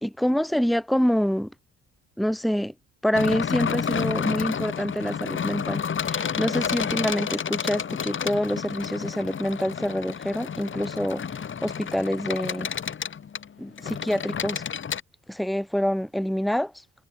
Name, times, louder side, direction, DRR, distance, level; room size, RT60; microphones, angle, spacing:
voice 1, 0.0-1.5 2.2-2.7 3.0-12.7 13.6-14.6 15.3-16.7, equal, ahead, 1.6 m, -26 dB
sound 1, 3.1-15.0, left 7 dB, 40° left, 1.6 m, -30 dB
cardioid pair, 90°, 30 cm